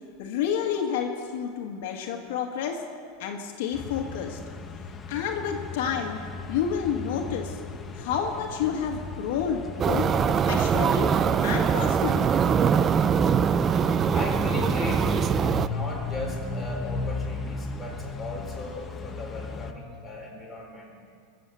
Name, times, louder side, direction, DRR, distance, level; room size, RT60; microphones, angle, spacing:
voice 1, 0.2-2.8 3.2-4.4 5.1-6.2 6.5-7.6 7.9-11.1 11.4-12.3, left 7 dB, 70° left, 2 dB, 1.7 m, -29 dB
sound 1, 3.7-19.7, left 4 dB, 20° left, 0.9 m, -36 dB
sound 2, 9.8-15.7, right 7 dB, 25° right, 0.4 m, -23 dB
voice 2, 14.1-20.9, left 2 dB, ahead, -4 dB, 3.9 m, -37 dB
23.0 x 7.7 x 7.0 m, 2.2 s
supercardioid pair, 155°, 0 cm